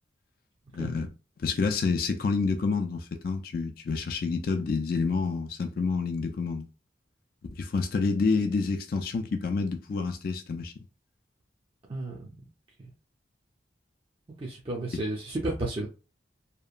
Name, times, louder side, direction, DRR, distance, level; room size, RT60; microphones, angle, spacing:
voice 1, 0.7-1.1 1.4-6.7 7.5-10.7, left 4 dB, 55° left, 0.4 m, -28 dB
voice 2, 11.9-12.3 14.4-15.9, right 2 dB, 30° right, 0.5 m, -32 dB
2.8 x 2.2 x 2.4 m
head